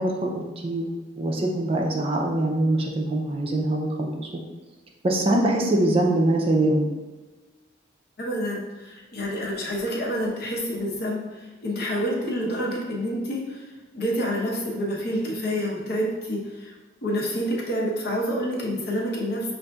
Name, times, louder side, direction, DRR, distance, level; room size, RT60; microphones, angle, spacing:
voice 1, 0.0-4.3 5.0-6.9, right 1 dB, 30° right, 1 dB, 0.4 m, -23 dB
voice 2, 8.2-16.8 17.0-19.5, equal, 55° left, -2 dB, 0.8 m, -28 dB
6.2 x 2.6 x 2.3 m, 1.2 s
head